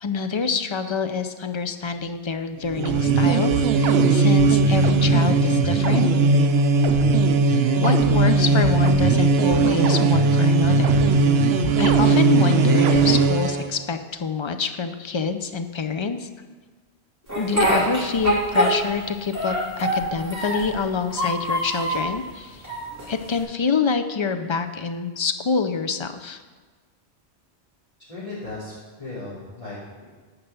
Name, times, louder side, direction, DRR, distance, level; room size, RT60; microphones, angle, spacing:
voice 1, 0.0-6.1 7.4-11.0 11.8-16.3 17.3-22.7 23.1-26.4, left 5 dB, 45° left, 9 dB, 0.4 m, -26 dB
sound 1, 2.7-13.7, right 3 dB, 70° right, 0.9 m, -18 dB
Speech, 17.3-19.0 19.3-20.7 21.1-22.1 22.6-23.4, equal, 15° right, 3.0 m, -24 dB
voice 2, 28.1-30.0, left 2 dB, 30° left, -12 dB, 2.9 m, -36 dB
9.8 x 5.4 x 6.9 m, 1.4 s
omnidirectional pair, 1.1 m